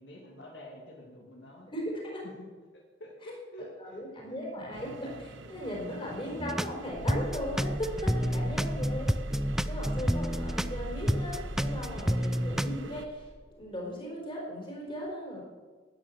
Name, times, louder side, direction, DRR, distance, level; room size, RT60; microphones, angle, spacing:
voice 1, 0.0-1.7 2.2-4.0 4.3-4.5 8.2-8.6, left 1 dB, 70° left, -1 dB, 2.3 m, -47 dB
voice 2, 1.7-2.2 3.8-9.1 9.6-15.4, equal, 30° left, -2 dB, 4.7 m, -37 dB
sound 1, 4.7-13.1, right 3 dB, 80° right, 1.0 m, -46 dB
sound 2, 6.4-6.8 7.1-10.8 11.1-12.8, equal, ahead, 0.3 m, -29 dB
sound 3, 6.8-13.4, equal, 20° right, 1.5 m, -39 dB
13.5 x 9.4 x 7.2 m, 1.4 s
head